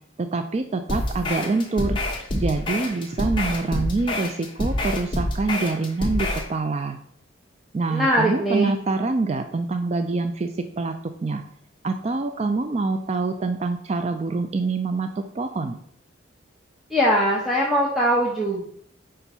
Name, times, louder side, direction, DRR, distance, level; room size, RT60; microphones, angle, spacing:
voice 1, 0.2-2.0 2.4-7.0 7.7-11.4 11.8-15.8, right 3 dB, 30° right, 7 dB, 0.3 m, -25 dB
sound 1, 0.9-6.5, left 1 dB, 25° left, 1.0 m, -27 dB
voice 2, 7.9-8.7 16.9-18.6, equal, ahead, -5 dB, 0.8 m, -21 dB
5.0 x 4.4 x 5.4 m, 0.63 s
head